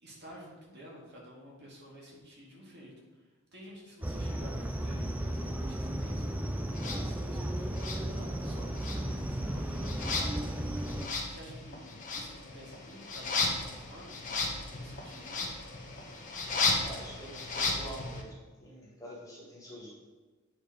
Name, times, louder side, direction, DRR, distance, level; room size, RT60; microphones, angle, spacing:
voice 1, 0.0-2.9 3.5-6.2 6.8-10.8 11.3-14.4 14.7-15.5, equal, 50° right, -4 dB, 2.0 m, -51 dB
sound 1, 4.0-11.1, right 1 dB, 5° right, 0.4 m, -34 dB
sound 2, 6.7-7.0 7.7-8.5 8.8-18.2, left 3 dB, 35° left, 1.1 m, -35 dB
voice 2, 16.8-19.9, right 1 dB, 15° left, -5 dB, 1.8 m, -47 dB
8.8 x 4.4 x 5.0 m, 1.3 s
head